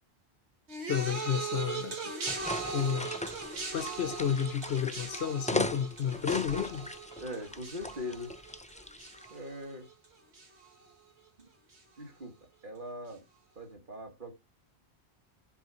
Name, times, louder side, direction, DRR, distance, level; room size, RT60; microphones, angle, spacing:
sound 1, 0.7-10.1 10.3-10.9 11.7-11.8, right 4 dB, 85° right, 2.2 m, -40 dB
voice 1, 0.9-2.0 2.7-3.1 3.7-6.9, left 8 dB, 70° left, 0.9 m, -31 dB
sound 2, 2.3-9.3, left 2 dB, 10° left, 0.3 m, -38 dB
voice 2, 7.2-8.3 9.3-9.9 11.4-11.5 12.0-12.3 12.6-13.2 13.6-14.3, left 1 dB, 50° right, 2.6 m, -41 dB
7.4 x 5.4 x 6.2 m
omnidirectional pair, 1.1 m